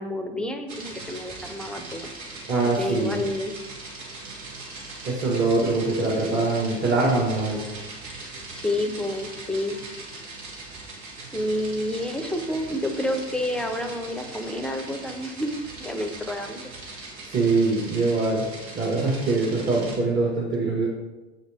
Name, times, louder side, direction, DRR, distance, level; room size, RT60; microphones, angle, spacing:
voice 1, 0.0-2.1 2.7-3.5 8.5-9.8 11.3-16.7, left 1 dB, 5° left, 6 dB, 0.8 m, -29 dB
sound 1, 0.7-20.0, right 3 dB, 75° right, 2.3 m, -40 dB
voice 2, 2.5-3.2 5.0-7.6 17.3-18.4 18.7-20.9, right 3 dB, 35° right, -4 dB, 1.8 m, -23 dB
6.8 x 6.4 x 3.6 m, 1.1 s
hypercardioid pair, 100°, 33 cm